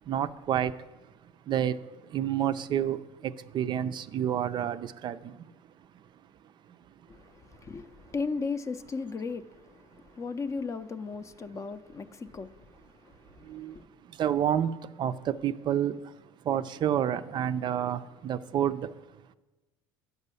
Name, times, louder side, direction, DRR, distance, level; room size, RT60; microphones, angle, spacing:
voice 1, 0.1-0.7 1.5-1.7 2.1-3.0 3.5-5.2 13.5-13.7 14.2-14.7 15.0-16.0 16.5-18.8, right 10 dB, 45° right, 12 dB, 0.4 m, -28 dB
voice 2, 7.1-13.8, left 4 dB, 25° left, 12 dB, 0.5 m, -37 dB
8.1 x 5.4 x 6.8 m, 1.1 s
supercardioid pair, 100°, 11 cm